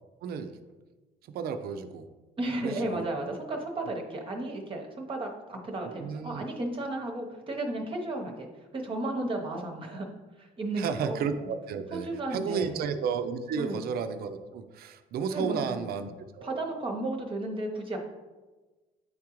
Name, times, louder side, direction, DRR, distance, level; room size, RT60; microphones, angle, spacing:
voice 1, 0.2-0.6 1.3-2.1 2.6-3.2 5.8-6.4 9.4-9.6 9.9-10.0 10.8-16.6, right 6 dB, 65° right, 9 dB, 0.5 m, -33 dB
voice 2, 2.4-8.5 8.7-10.1 10.4-11.1 11.9-12.8 13.6-13.8 15.3-16.0 16.4-18.0, right 2 dB, 30° right, 1 dB, 0.9 m, -34 dB
9.1 x 3.6 x 3.0 m, 1.2 s
cardioid pair, 110°, 17 cm